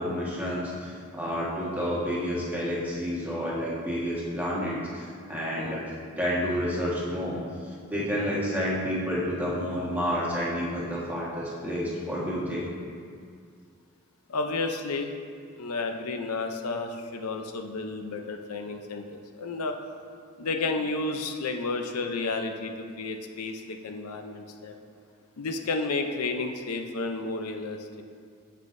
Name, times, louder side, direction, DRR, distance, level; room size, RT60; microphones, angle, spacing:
voice 1, 0.0-5.8 6.2-7.4 7.9-12.7, equal, 10° right, -7 dB, 1.5 m, -30 dB
voice 2, 14.3-15.1 15.6-19.7 20.4-24.7 25.4-27.8, left 3 dB, 90° left, 5 dB, 0.6 m, -31 dB
15.0 x 5.6 x 2.6 m, 2.2 s
head